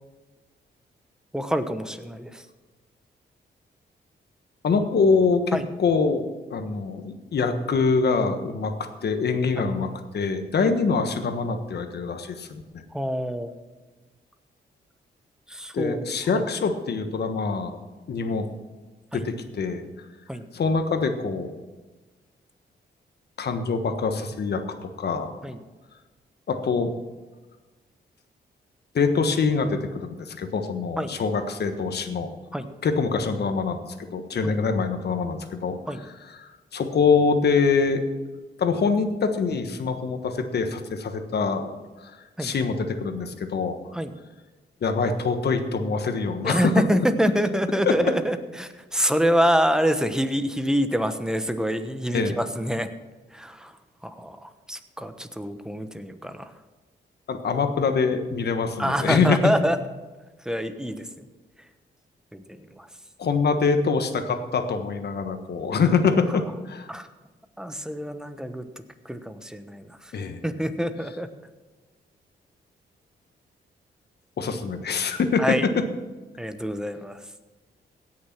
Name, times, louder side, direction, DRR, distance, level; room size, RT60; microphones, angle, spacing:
voice 1, 1.3-2.4 5.5-5.6 9.6-9.7 10.6-10.7 12.9-13.5 15.5-16.0 16.3-16.4 19.1-19.2 20.3-20.4 25.4-25.6 31.0-31.1 32.5-32.7 35.9-36.0 42.4-42.5 43.9-44.1 46.4-52.9 53.3-53.7 54.0-56.5 58.8-59.8 60.4-61.1 62.3-62.9 66.9-67.1 67.6-68.7 69.0-70.1 70.4-71.3 75.4-75.7 76.4-77.2, equal, 5° right, 9 dB, 1.1 m, -26 dB
voice 2, 4.6-6.2 6.5-8.7 9.0-12.8 15.7-17.8 18.1-18.5 19.1-19.8 20.5-21.6 23.4-25.3 26.5-26.9 28.9-32.3 32.8-38.0 38.6-41.7 42.0-43.8 44.8-46.8 47.8-48.1 52.1-52.4 57.3-59.5 63.2-66.9 70.1-70.4 74.4-75.8, left 4 dB, 65° left, 7 dB, 1.4 m, -24 dB
17.0 x 6.6 x 6.1 m, 1.2 s
cardioid pair, 90°, 18 cm